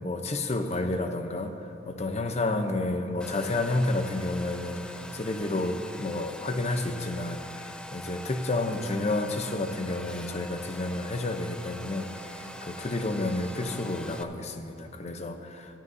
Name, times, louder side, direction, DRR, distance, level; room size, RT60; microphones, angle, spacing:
voice 1, 0.0-15.8, left 2 dB, 40° left, 7 dB, 0.7 m, -30 dB
Domestic sounds home sounds, 3.2-14.2, left 1 dB, 5° left, 0.4 m, -43 dB
19.5 x 12.0 x 2.7 m, 2.7 s
head